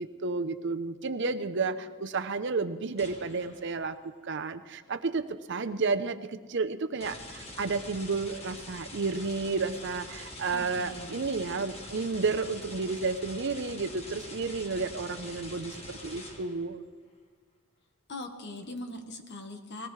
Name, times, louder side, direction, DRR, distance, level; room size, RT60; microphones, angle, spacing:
voice 1, 0.0-4.0 4.2-16.8, right 4 dB, 55° right, 10 dB, 0.7 m, -31 dB
sound 1, 3.0-3.9 7.0-16.7, left 1 dB, 30° left, 1.6 m, -45 dB
voice 2, 10.5-11.2 18.1-19.9, left 2 dB, 50° left, 5 dB, 1.4 m, -41 dB
19.5 x 18.0 x 3.2 m, 1.5 s
head